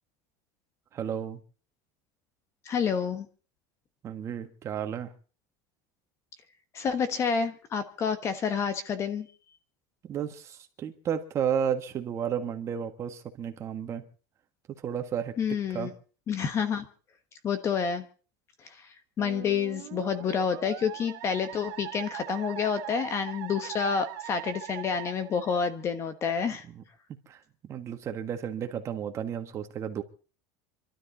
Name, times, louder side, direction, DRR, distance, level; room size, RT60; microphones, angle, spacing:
voice 1, 0.9-1.4 4.0-5.1 10.0-14.1 14.8-15.3 15.7-15.9 26.6-26.8 27.3-30.0, right 8 dB, 30° right, 1.7 m, -32 dB
voice 2, 2.6-3.3 6.7-9.3 15.4-15.9 16.3-16.9 17.4-18.0 19.2-26.6, left 6 dB, 30° left, 1.3 m, -29 dB
Musical instrument, 19.2-26.1, right 15 dB, 75° right, 2.2 m, -41 dB
26.5 x 12.5 x 4.1 m
cardioid pair, 160°, 10 cm